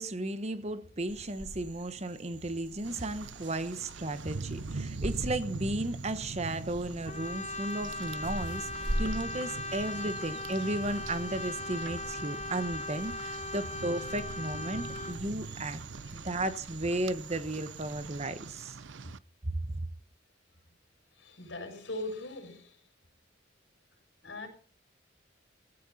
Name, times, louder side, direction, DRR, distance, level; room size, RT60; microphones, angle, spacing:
voice 1, 0.0-15.8 16.1-18.8, right 1 dB, 35° right, 1.2 m, -34 dB
sound 1, 1.1-18.6, right 1 dB, 65° right, 1.8 m, -43 dB
Rain, 2.8-19.2, right 3 dB, 80° right, 0.7 m, -43 dB
Brass instrument, 7.1-15.2, left 3 dB, 35° left, 1.6 m, -39 dB
voice 2, 21.2-22.8 24.2-24.5, left 2 dB, 75° left, 6.7 m, -40 dB
16.5 x 16.5 x 4.2 m
head